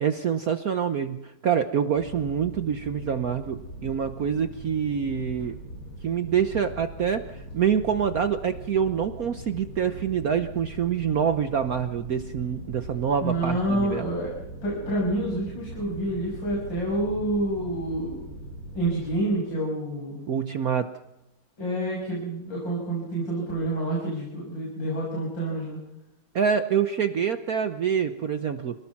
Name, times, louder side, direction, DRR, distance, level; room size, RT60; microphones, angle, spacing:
voice 1, 0.0-5.5 6.0-14.0 20.3-20.9 26.3-28.7, right 7 dB, 55° right, 9 dB, 1.2 m, -26 dB
sound 1, 1.9-19.2, equal, 50° left, 8.1 m, -41 dB
voice 2, 13.2-14.3 14.6-18.2 18.7-20.2 21.6-25.8, right 1 dB, 65° left, -3 dB, 7.4 m, -28 dB
27.0 x 18.5 x 6.0 m, 0.90 s
omnidirectional pair, 2.2 m